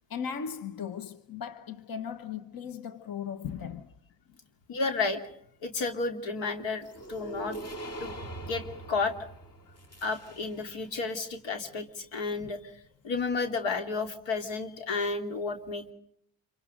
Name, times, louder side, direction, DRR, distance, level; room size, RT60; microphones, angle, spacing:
voice 1, 0.1-3.9 4.3-4.4, left 7 dB, 50° left, 1.2 m, -37 dB
voice 2, 4.7-5.2 5.6-9.1 10.0-12.7 13.0-15.9, left 4 dB, 90° left, 2.9 m, -32 dB
sound 1, 6.8-10.8, right 2 dB, 35° left, 2.4 m, -42 dB
26.5 x 24.5 x 5.1 m
cardioid pair, 100°, 44 cm